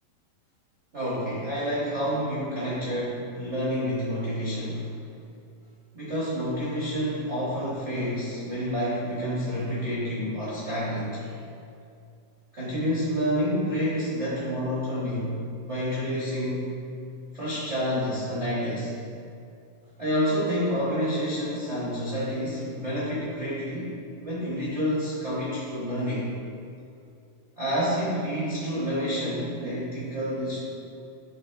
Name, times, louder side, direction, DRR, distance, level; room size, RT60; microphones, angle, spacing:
voice 1, 0.9-4.9 5.9-11.4 12.5-15.4 15.7-16.7 17.3-18.9 20.0-26.3 27.6-30.6, equal, 80° right, -9 dB, 0.6 m, -29 dB
10.5 x 4.0 x 3.4 m, 2.5 s
omnidirectional pair, 3.9 m